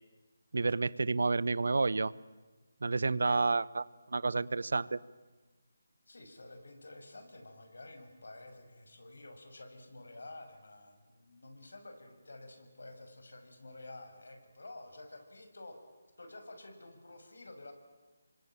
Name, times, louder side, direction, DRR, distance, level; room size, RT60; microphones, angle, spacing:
voice 1, 0.5-2.1 2.8-5.0, right 3 dB, 70° right, 20 dB, 0.9 m, -30 dB
voice 2, 6.1-15.8 16.2-17.7, left 2 dB, 75° left, 6 dB, 6.1 m, -50 dB
27.0 x 24.5 x 8.9 m, 1.2 s
figure-of-eight pair, 155°, 0 cm